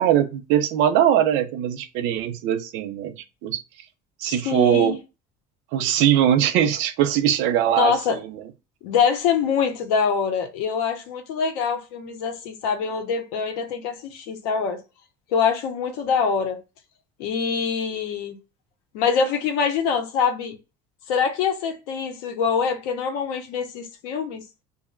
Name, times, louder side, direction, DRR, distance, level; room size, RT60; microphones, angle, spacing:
voice 1, 0.0-3.1 3.4-3.6 4.2-4.9 5.7-8.4, right 10 dB, 70° right, 0.6 m, -21 dB
voice 2, 4.3-5.0 7.8-8.2 8.8-14.8 15.3-16.6 17.2-18.4 18.9-20.6 21.1-24.4, left 6 dB, 90° left, 0.7 m, -24 dB
2.6 x 2.0 x 3.8 m
cardioid pair, 135°, 20 cm